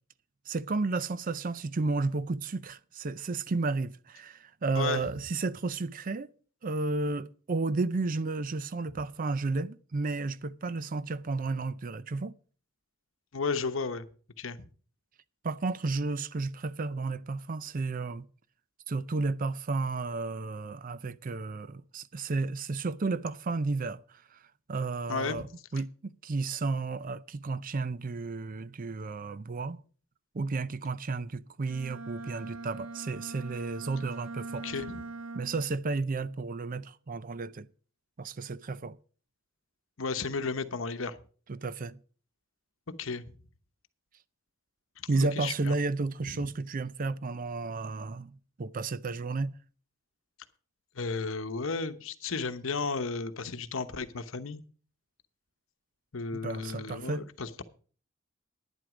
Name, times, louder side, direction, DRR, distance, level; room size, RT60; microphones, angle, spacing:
voice 1, 0.5-6.3 6.6-12.3 15.4-18.3 18.9-24.4 24.7-25.5 25.7-29.8 30.3-34.7 35.3-37.7 38.2-39.0 41.5-42.0 45.1-49.5 56.3-57.2, right 3 dB, 40° right, 0.5 m, -32 dB
voice 2, 13.3-14.1 14.4-14.7 25.1-25.5 34.6-35.0 40.0-41.2 43.0-43.2 45.1-45.7 50.9-54.6 56.1-57.6, left 4 dB, 75° left, 0.9 m, -33 dB
Bowed string instrument, 31.6-35.8, right 3 dB, 75° right, 0.8 m, -42 dB
11.0 x 10.0 x 5.0 m
head